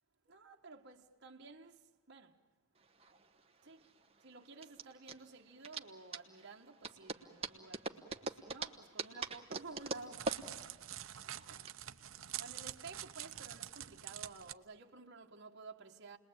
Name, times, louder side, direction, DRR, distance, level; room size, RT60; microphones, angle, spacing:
voice 1, 0.2-2.4 3.6-3.8 4.2-10.4 11.5-11.7 12.4-16.2, right 3 dB, 55° right, 1.4 m, -53 dB
sound 1, 2.8-11.7, right 3 dB, 30° right, 1.1 m, -44 dB
Crackle, 9.7-14.5, right 12 dB, 70° right, 0.8 m, -46 dB
29.5 x 21.0 x 8.8 m
head